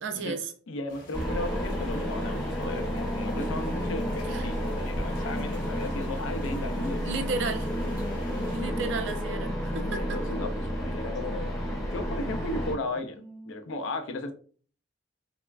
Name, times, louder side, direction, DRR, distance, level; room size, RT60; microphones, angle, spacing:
voice 1, 0.0-0.5 4.3-4.5 7.1-7.7 8.5-10.2, right 3 dB, 65° right, 0.4 m, -33 dB
voice 2, 0.7-7.3 8.6-8.9 10.0-11.6 11.9-14.3, left 2 dB, 75° left, 0.4 m, -35 dB
sound 1, 0.9-8.6, left 1 dB, 45° left, 0.9 m, -50 dB
sound 2, 1.1-12.7, equal, 15° left, 0.6 m, -31 dB
sound 3, 3.2-13.5, right 1 dB, 35° right, 0.7 m, -49 dB
3.2 x 2.0 x 2.3 m
head